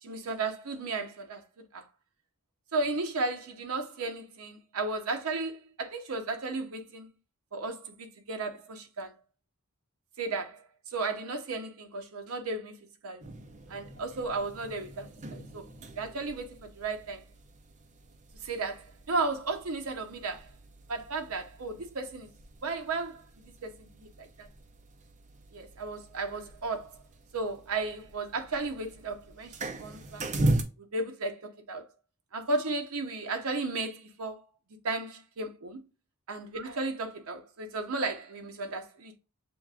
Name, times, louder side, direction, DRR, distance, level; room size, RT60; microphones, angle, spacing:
voice 1, 0.0-1.4 1.7-1.9 2.7-7.1 7.5-9.1 10.2-12.8 13.0-13.3 13.7-15.7 15.9-17.2 18.4-20.5 20.9-22.3 22.6-24.5 25.5-27.0 27.3-29.5 29.8-30.3 30.8-31.9 32.3-34.4 34.8-35.8 36.3-39.2, right 3 dB, 70° right, 0.7 m, -34 dB
sound 1, 13.2-30.6, right 1 dB, 35° right, 0.5 m, -39 dB
6.8 x 2.4 x 2.3 m
head